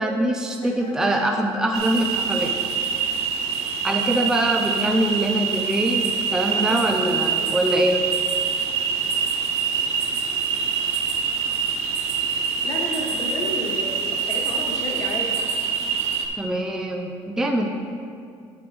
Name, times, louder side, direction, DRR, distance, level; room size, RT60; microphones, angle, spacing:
voice 1, 0.0-2.6 3.8-8.0 16.4-17.7, right 1 dB, 5° right, 2 dB, 0.5 m, -23 dB
voice 2, 0.6-1.1 6.4-6.8 7.4-7.7 12.6-15.3, left 2 dB, 35° left, 0 dB, 1.3 m, -32 dB
sound 1, 1.7-16.3, right 6 dB, 70° right, 0.8 m, -25 dB
8.6 x 7.5 x 3.4 m, 2.4 s
cardioid pair, 130°, 11 cm